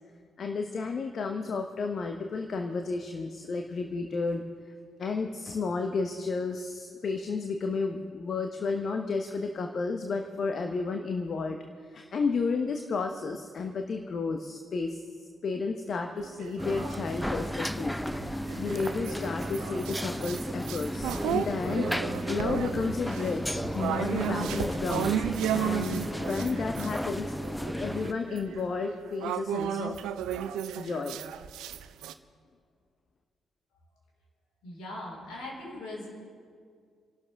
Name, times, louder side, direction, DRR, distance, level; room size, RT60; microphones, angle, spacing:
voice 1, 0.4-4.4 5.0-11.6 11.9-18.0 18.6-21.9 22.3-25.1 25.5-27.3 27.8-30.0 30.8-31.2, left 4 dB, 50° left, 5 dB, 1.0 m, -32 dB
sound 1, 16.2-17.6 18.1-27.0 27.4-32.1, right 10 dB, 65° right, 0.5 m, -34 dB
sound 2, 16.6-28.1, equal, 5° left, 0.7 m, -34 dB
voice 2, 34.6-36.1, left 1 dB, 65° left, -3 dB, 4.8 m, -40 dB
28.5 x 12.0 x 3.6 m, 2.1 s
figure-of-eight pair, 40°, 0 cm